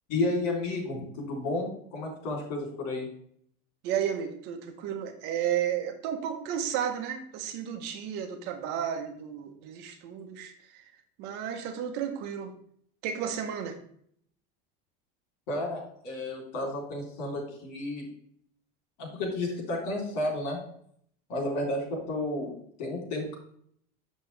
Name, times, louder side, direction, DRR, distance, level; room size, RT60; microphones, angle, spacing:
voice 1, 0.1-3.1 15.5-18.1 19.0-20.6 21.3-22.5 22.8-23.4, left 2 dB, 90° left, 0 dB, 3.4 m, -32 dB
voice 2, 3.8-10.8 11.2-12.5 13.0-13.8, right 9 dB, 55° right, 6 dB, 1.0 m, -33 dB
7.6 x 6.3 x 3.3 m, 0.65 s
cardioid pair, 175°, 21 cm